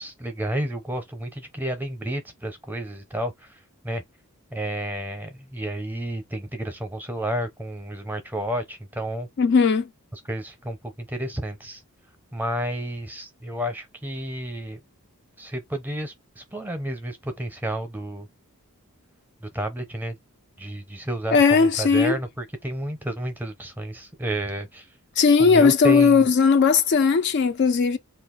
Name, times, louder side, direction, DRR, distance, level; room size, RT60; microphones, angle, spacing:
voice 1, 0.0-4.0 4.5-9.3 10.1-11.8 12.3-14.8 15.4-18.3 19.4-20.1 20.6-24.9 25.4-26.3, right 1 dB, 10° right, 0.7 m, -31 dB
voice 2, 9.4-9.9 21.3-22.2 25.2-28.0, left 5 dB, 50° left, 0.3 m, -18 dB
2.5 x 2.3 x 3.8 m
head